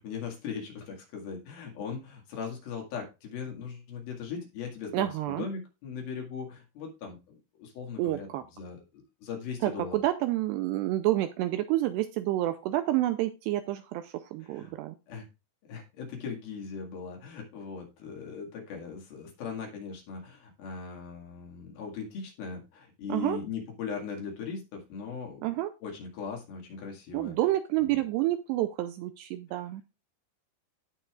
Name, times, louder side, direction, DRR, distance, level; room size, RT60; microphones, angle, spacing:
voice 1, 0.0-10.0 14.4-14.7 15.1-15.3 15.7-25.5 25.8-27.4 27.8-28.0, left 6 dB, 60° left, 1 dB, 3.6 m, -39 dB
voice 2, 4.9-5.5 8.0-8.4 9.6-15.0 23.1-23.4 25.4-25.7 27.1-29.8, right 15 dB, 85° right, 9 dB, 2.5 m, -29 dB
16.5 x 5.8 x 2.4 m, 0.27 s
omnidirectional pair, 5.3 m